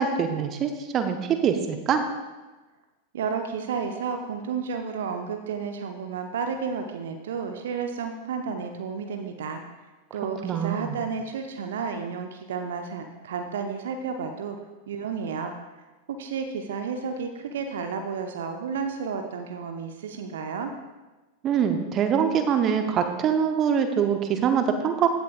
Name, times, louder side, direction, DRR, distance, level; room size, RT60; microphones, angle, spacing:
voice 1, 0.0-2.0 10.4-11.0 21.4-25.1, right 7 dB, 30° right, 7 dB, 0.8 m, -24 dB
voice 2, 3.1-9.6 10.1-14.6 14.9-15.5 16.1-20.7, right 6 dB, 60° right, 6 dB, 0.7 m, -32 dB
15.0 x 6.9 x 2.5 m, 1.2 s
figure-of-eight pair, 90°, 0 cm